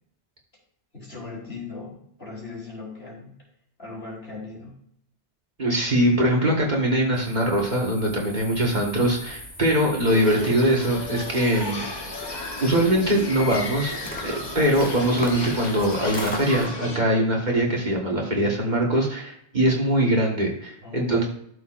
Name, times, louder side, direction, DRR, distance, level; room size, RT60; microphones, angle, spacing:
voice 1, 0.9-3.3 3.8-4.7 20.8-21.2, left 3 dB, 65° left, -4 dB, 3.6 m, -38 dB
voice 2, 5.6-11.9 12.6-14.0 14.2-21.2, right 1 dB, 40° right, -1 dB, 1.8 m, -22 dB
sound 1, 7.1-16.7, left 1 dB, 10° left, 1.0 m, -39 dB
sound 2, 10.1-17.0, left 2 dB, 40° left, 1.4 m, -33 dB
12.5 x 6.9 x 2.5 m, 0.71 s
omnidirectional pair, 1.1 m